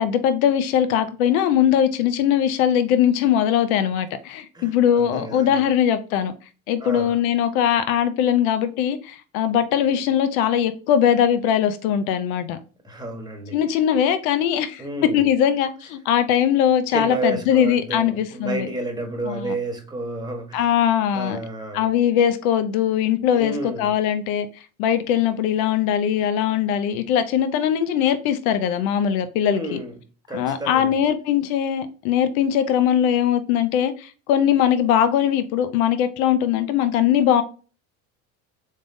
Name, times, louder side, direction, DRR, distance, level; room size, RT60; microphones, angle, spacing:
voice 1, 0.0-6.3 6.7-12.6 13.5-14.8 15.1-18.7 19.2-19.5 20.5-21.4 21.7-24.5 24.8-29.8 30.3-37.4, left 9 dB, 80° left, 0.7 m, -21 dB
voice 2, 4.5-5.7 6.8-7.2 12.8-13.6 14.8-15.3 16.9-20.7 21.1-21.9 23.3-23.9 29.4-29.9 30.3-31.0, right 1 dB, 10° right, 1.2 m, -31 dB
3.6 x 3.3 x 2.6 m
hypercardioid pair, 80°, 42 cm